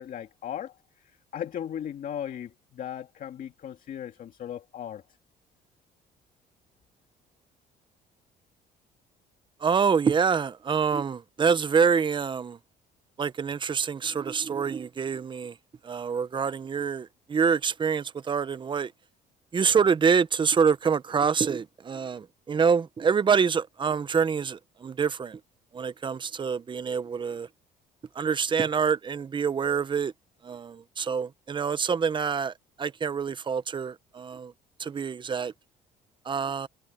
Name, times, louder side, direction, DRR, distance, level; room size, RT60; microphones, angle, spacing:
voice 1, 0.0-5.0, left 9 dB, 55° left, 2.1 m, -37 dB
voice 2, 9.6-12.6 13.2-15.5 15.8-18.9 19.5-25.4 25.7-27.5 28.1-30.1 30.4-34.5 34.8-35.5 36.2-36.7, right 6 dB, 30° right, 0.8 m, -26 dB
cardioid pair, 110°, 17 cm